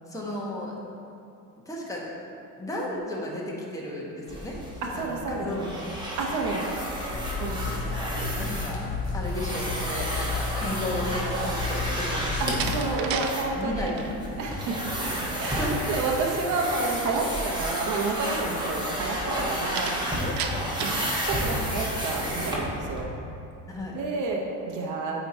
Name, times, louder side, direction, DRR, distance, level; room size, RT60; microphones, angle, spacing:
voice 1, 0.1-0.7 1.7-2.0 2.6-4.6 4.9-5.8 7.9-8.8 9.1-13.2 13.5-14.3 15.6-15.8 19.9-21.0 23.7-23.9, left 1 dB, 10° left, -4 dB, 1.1 m, -34 dB
sound 1, 4.3-23.0, equal, 15° right, 1.1 m, -32 dB
voice 2, 4.8-5.6 6.2-6.6 7.4-7.9 8.7-8.8 12.4-13.9 14.4-14.9 15.4-20.2 21.2-23.1 23.9-25.2, right 3 dB, 60° right, -1 dB, 0.9 m, -30 dB
sound 2, 7.1-12.9, left 3 dB, 55° left, 1.4 m, -32 dB
Slam, 12.2-13.3 13.7-14.1 19.8-21.1, right 7 dB, 80° right, 0.6 m, -32 dB
8.8 x 3.1 x 4.2 m, 2.6 s
cardioid pair, 125°, 35 cm